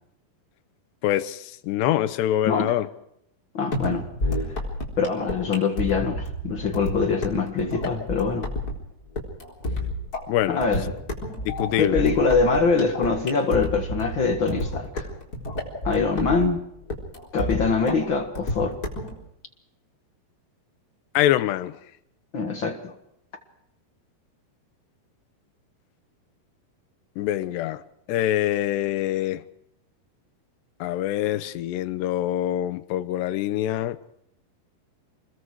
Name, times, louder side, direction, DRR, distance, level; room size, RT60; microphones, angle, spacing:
voice 1, 1.0-2.9 10.3-10.6 11.6-12.0 21.1-21.7 27.2-27.8 28.1-29.4 30.8-34.0, left 12 dB, 80° left, 3.1 m, -24 dB
voice 2, 3.5-4.6 5.0-8.4 10.5-10.9 11.8-15.1 15.8-16.6 17.3-18.8 22.3-22.9, left 4 dB, 60° left, 1.2 m, -24 dB
sound 1, 3.7-19.1, left 1 dB, 20° left, 4.1 m, -30 dB
28.0 x 21.5 x 4.8 m
omnidirectional pair, 4.8 m